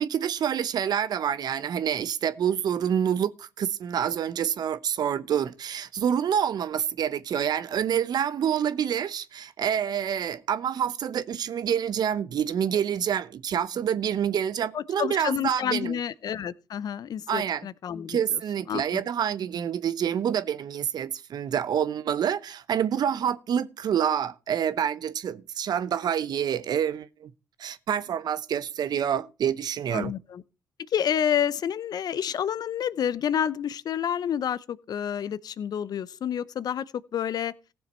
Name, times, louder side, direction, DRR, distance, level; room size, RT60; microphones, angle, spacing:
voice 1, 0.0-16.0 17.3-17.7 18.1-27.3 27.6-30.1, right 9 dB, 55° right, 0.8 m, -27 dB
voice 2, 14.7-18.4 18.7-18.8 29.9-30.4 30.9-36.9 37.1-37.5, left 9 dB, 55° left, 0.6 m, -29 dB
15.5 x 7.0 x 4.3 m
hypercardioid pair, 55°, 8 cm